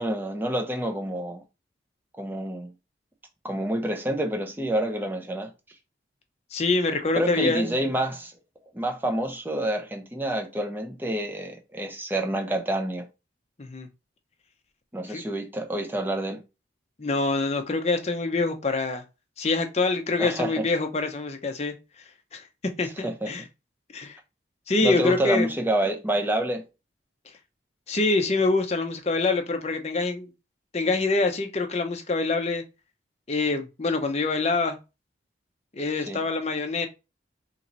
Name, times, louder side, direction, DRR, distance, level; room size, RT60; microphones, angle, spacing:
voice 1, 0.0-1.4 2.2-2.7 3.4-5.5 7.1-8.3 8.7-13.1 14.9-16.4 20.2-20.7 23.0-23.3 24.8-26.7 36.1-36.2, right 1 dB, 10° right, 0.6 m, -28 dB
voice 2, 6.5-7.6 13.6-13.9 15.1-15.2 17.0-19.0 19.4-21.7 22.3-22.4 22.8-23.4 23.9-24.2 24.7-25.5 27.9-30.3 30.7-32.6 33.3-34.8 35.7-36.9, left 3 dB, 35° left, 0.6 m, -25 dB
3.0 x 2.9 x 3.9 m
head